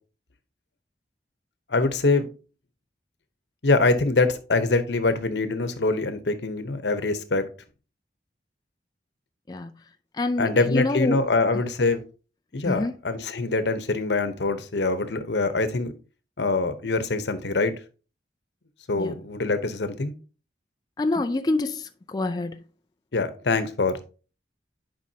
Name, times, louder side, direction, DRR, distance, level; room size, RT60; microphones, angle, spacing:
voice 1, 1.7-2.3 3.6-7.4 10.4-12.0 12.5-15.9 16.4-17.7 18.9-20.1 23.1-24.0, left 3 dB, 80° left, 0.9 m, -24 dB
voice 2, 10.1-11.2 11.5-11.6 12.6-12.9 18.9-19.2 21.0-22.6, left 2 dB, 20° left, 0.4 m, -27 dB
10.5 x 5.1 x 2.8 m
head